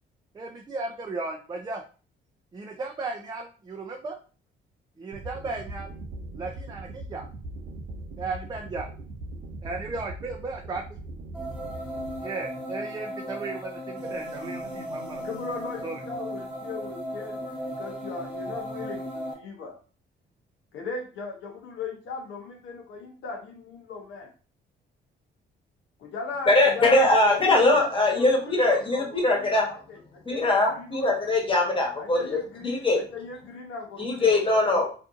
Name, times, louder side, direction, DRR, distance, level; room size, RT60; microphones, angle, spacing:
voice 1, 0.3-1.8 2.5-4.2 5.0-5.9 6.4-7.2 8.2-8.9 9.6-10.8 12.2-15.3 15.8-16.0, right 3 dB, 20° right, 0 dB, 0.4 m, -35 dB
sound 1, 5.1-12.2, right 2 dB, 70° right, 0.6 m, -40 dB
sound 2, 11.3-19.3, equal, 5° right, 0.9 m, -36 dB
voice 2, 15.2-19.8 20.7-24.3 26.0-31.1 32.0-34.4 34.7-34.8, left 4 dB, 75° left, 2 dB, 0.7 m, -38 dB
voice 3, 26.5-29.7 30.3-32.4 32.6-33.0 34.0-34.9, left 2 dB, 25° left, -1 dB, 1.1 m, -21 dB
2.6 x 2.5 x 2.4 m, 0.38 s
cardioid pair, 90°, 20 cm